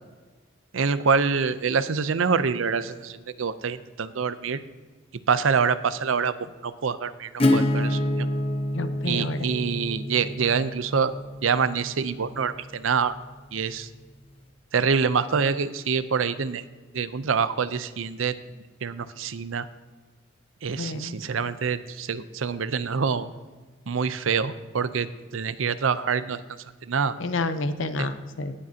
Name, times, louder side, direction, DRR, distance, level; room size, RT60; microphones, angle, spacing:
voice 1, 0.7-4.6 5.3-6.3 6.6-8.3 9.0-11.1 11.4-13.2 13.5-13.9 14.7-16.6 16.9-18.4 18.8-19.7 20.6-23.3 23.9-26.4 26.8-27.1 28.0-28.1, right 5 dB, 90° right, 14 dB, 0.6 m, -26 dB
Acoustic guitar / Strum, 7.4-12.9, left 1 dB, 30° left, 0.8 m, -27 dB
voice 2, 8.7-9.6 20.8-21.2 27.2-28.5, left 3 dB, 80° left, 10 dB, 0.8 m, -30 dB
18.5 x 7.6 x 2.8 m, 1.4 s
head